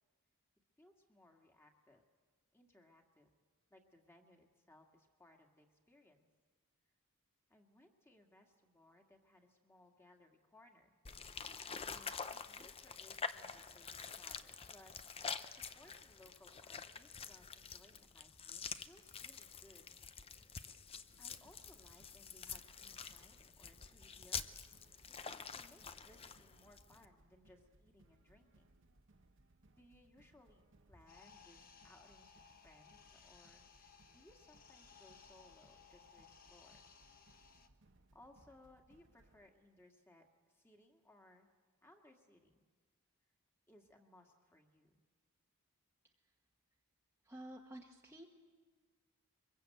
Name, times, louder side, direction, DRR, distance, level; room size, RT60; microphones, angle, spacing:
voice 1, 0.8-2.0 2.5-3.3 3.7-6.3 7.5-11.0 11.8-15.1 15.5-19.9 21.2-24.5 25.3-28.8 29.8-36.9 38.1-40.3 40.5-41.5 41.8-42.6 43.7-45.0, left 1 dB, 10° left, 2 dB, 1.9 m, -65 dB
sound 1, 11.0-27.0, left 6 dB, 25° left, 0.7 m, -47 dB
sound 2, 21.1-39.5, right 2 dB, 60° right, 1.1 m, -69 dB
sound 3, 31.1-37.7, left 6 dB, 40° left, 1.1 m, -62 dB
voice 2, 47.2-48.2, right 1 dB, 10° right, -1 dB, 1.2 m, -51 dB
23.5 x 22.0 x 7.9 m, 1.5 s
head